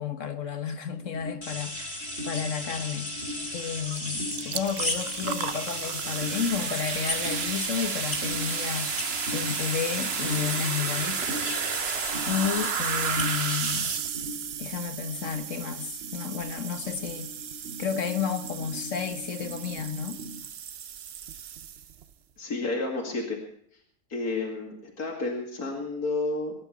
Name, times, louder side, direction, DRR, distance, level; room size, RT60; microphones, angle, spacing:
voice 1, 0.0-3.1 3.5-11.4 12.3-13.9 14.6-17.3 17.8-20.2, left 7 dB, 55° left, 1.6 m, -32 dB
sound 1, 0.9-20.4, equal, 40° right, 2.1 m, -42 dB
sound 2, 1.4-14.0, left 1 dB, 15° left, 3.5 m, -34 dB
sound 3, 3.9-4.0 4.3-22.0, right 9 dB, 55° right, 0.8 m, -34 dB
voice 2, 22.4-23.4 24.1-26.5, left 3 dB, 80° left, 2.9 m, -31 dB
21.5 x 11.0 x 5.0 m
omnidirectional pair, 1.6 m